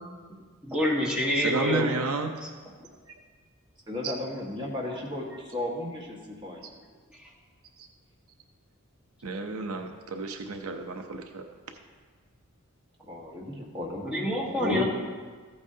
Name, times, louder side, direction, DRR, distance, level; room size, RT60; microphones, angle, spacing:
voice 1, 0.6-1.9 14.1-14.8, equal, 5° right, -5 dB, 1.5 m, -26 dB
voice 2, 1.4-2.3 4.0-4.1 9.2-11.4, right 3 dB, 80° right, 5 dB, 0.7 m, -31 dB
voice 3, 3.9-6.7 13.1-14.8, left 2 dB, 20° right, -2 dB, 1.6 m, -34 dB
14.5 x 8.7 x 2.8 m, 1.5 s
head